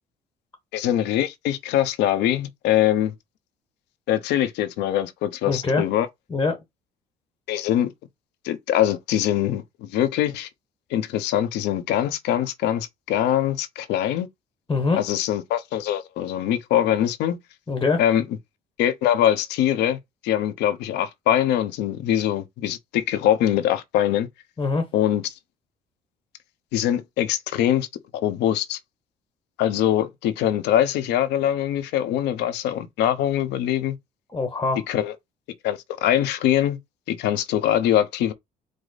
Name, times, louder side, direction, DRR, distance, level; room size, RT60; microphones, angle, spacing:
voice 1, 0.7-3.1 4.1-6.1 7.5-7.9 8.4-10.5 10.9-14.3 15.0-17.4 18.0-18.2 18.8-20.0 20.2-24.3 24.9-25.2 26.7-27.9 28.1-28.8 29.6-34.0 34.9-35.1 35.6-36.8 37.1-38.3, left 11 dB, 85° left, 0.8 m, -23 dB
voice 2, 5.5-5.9 6.3-6.6 14.7-15.0 17.7-18.0 24.6-24.9 34.3-34.8, left 4 dB, 20° left, 1.2 m, -23 dB
5.0 x 2.1 x 4.0 m
cardioid pair, 110°, 17 cm